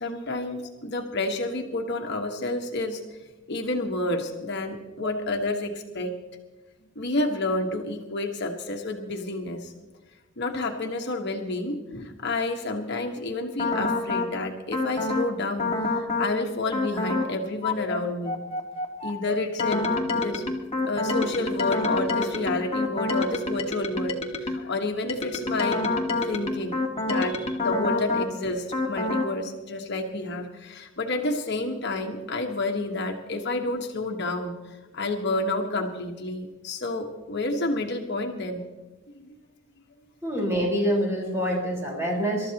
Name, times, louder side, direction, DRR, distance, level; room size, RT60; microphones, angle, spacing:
voice 1, 0.0-3.0 3.5-6.2 6.9-9.7 10.4-18.4 19.0-20.4 20.9-25.8 26.2-26.8 27.0-34.6 34.9-38.6 39.1-39.4, left 2 dB, 60° left, 2 dB, 1.4 m, -30 dB
sound 1, 13.6-14.3 14.7-15.3 15.6-16.3 16.7-17.3 17.6-24.7 25.1-28.3 28.7-29.3, left 2 dB, 30° left, 1.7 m, -27 dB
voice 2, 40.2-42.5, equal, 15° right, -3 dB, 4.5 m, -26 dB
26.5 x 13.0 x 2.9 m, 1.2 s
head